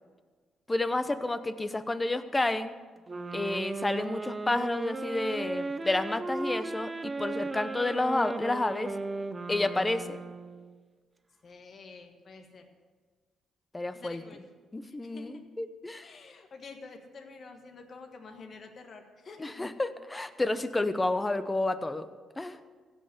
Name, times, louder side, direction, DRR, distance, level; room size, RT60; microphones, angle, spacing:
voice 1, 0.7-2.7 3.3-8.9 9.5-10.2 13.7-14.2 14.7-16.1 19.4-22.1 22.4-22.6, left 2 dB, 15° left, 11 dB, 0.8 m, -30 dB
sound 1, 3.1-10.8, right 3 dB, 25° right, 0.6 m, -36 dB
voice 2, 11.4-12.7 13.9-14.4 14.9-15.4 16.0-19.5, left 4 dB, 45° left, 5 dB, 1.6 m, -48 dB
16.0 x 5.5 x 7.9 m, 1.5 s
cardioid pair, 90°, 0 cm